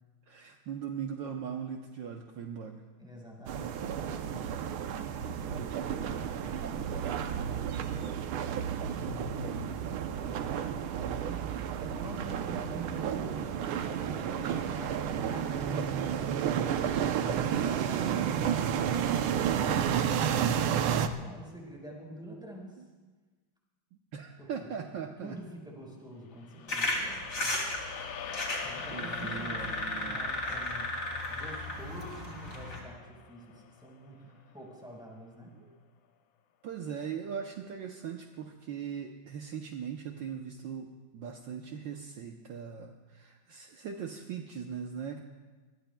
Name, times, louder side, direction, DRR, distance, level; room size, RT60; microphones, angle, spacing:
voice 1, 0.3-2.8 23.9-25.4 28.0-28.5 28.9-30.2 35.6-35.8 36.6-45.2, right 7 dB, 70° right, 3 dB, 1.5 m, -40 dB
voice 2, 3.0-4.5 5.1-8.3 8.9-11.5 11.8-16.1 16.5-18.8 21.1-22.8 24.4-27.6 28.6-30.9 31.3-35.6, equal, ahead, -2 dB, 4.4 m, -47 dB
sound 1, 3.5-21.1, right 8 dB, 85° right, 1.6 m, -31 dB
sound 2, 26.3-34.7, left 8 dB, 75° left, 1.5 m, -46 dB
sound 3, 26.7-32.8, left 1 dB, 40° left, 3.1 m, -35 dB
25.5 x 20.5 x 2.3 m, 1.3 s
omnidirectional pair, 2.3 m